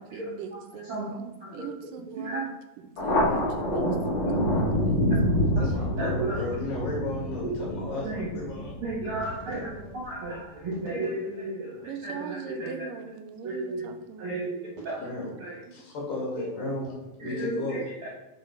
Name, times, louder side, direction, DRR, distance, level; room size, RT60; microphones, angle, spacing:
voice 1, 0.0-2.5 2.8-5.0 11.8-14.4, right 7 dB, 80° right, 6 dB, 2.4 m, -41 dB
voice 2, 2.1-2.4 6.0-6.4 7.4-7.5 8.0-8.3 8.8-12.9 13.4-13.8 14.2-15.0 15.4-15.6 16.4-16.7 17.2-18.1, right 2 dB, 50° right, -5 dB, 1.9 m, -34 dB
Thunder, 3.0-10.0, equal, 50° left, 3.3 m, -27 dB
voice 3, 5.6-8.7 15.0-15.4 15.7-16.9 17.2-17.8, left 2 dB, 70° left, -4 dB, 4.1 m, -34 dB
10.0 x 4.3 x 4.7 m, 1.0 s
omnidirectional pair, 3.9 m